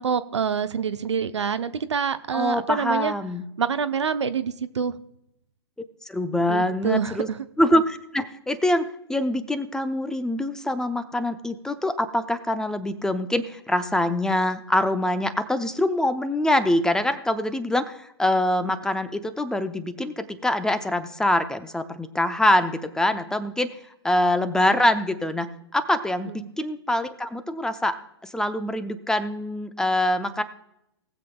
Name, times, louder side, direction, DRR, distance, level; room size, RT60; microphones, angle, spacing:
voice 1, 0.0-3.1 3.6-4.9 6.5-7.4, right 6 dB, 80° right, 11 dB, 0.7 m, -26 dB
voice 2, 2.3-3.4 6.1-7.3 7.6-23.7 24.0-28.0 28.2-30.4, left 1 dB, 5° left, 11 dB, 0.6 m, -24 dB
19.5 x 7.6 x 2.2 m, 0.80 s
hypercardioid pair, 120°, 15 cm